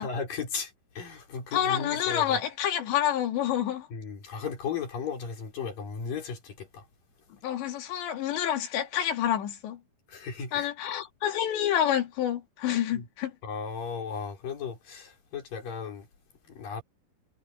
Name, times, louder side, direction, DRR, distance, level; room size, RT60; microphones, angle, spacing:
voice 1, 0.0-2.4 3.9-6.8 10.1-10.7 12.9-13.1 13.4-16.1 16.5-16.8, left 6 dB, 50° left, 6.2 m, -35 dB
voice 2, 1.5-3.9 7.4-9.8 10.5-13.3, left 10 dB, 80° left, 4.7 m, -28 dB
omnidirectional pair, 5.1 m